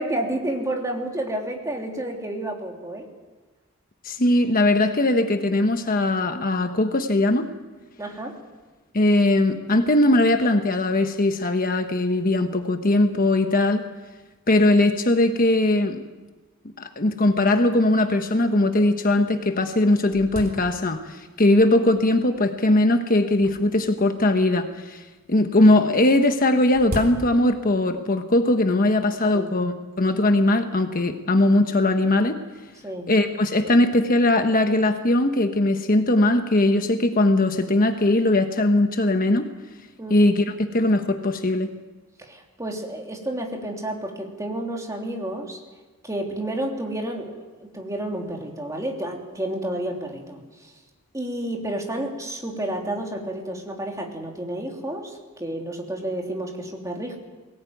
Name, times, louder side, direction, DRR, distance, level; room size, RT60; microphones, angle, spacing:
voice 1, 0.0-3.1 8.0-8.4 29.3-29.5 32.8-33.1 40.0-40.2 42.2-45.6 46.0-50.7 51.1-57.2, right 1 dB, 15° right, 1 dB, 3.1 m, -30 dB
voice 2, 4.0-7.5 8.9-13.9 14.5-16.0 16.8-25.0 25.3-32.4 33.1-39.5 40.1-41.7, left 1 dB, 40° left, 6 dB, 1.3 m, -20 dB
sound 1, 18.3-18.4 19.0-19.1 19.4-21.2 22.0-22.4 23.3-24.7 25.9-27.7, equal, 45° right, 3.7 m, -38 dB
22.5 x 18.5 x 9.3 m, 1.3 s
head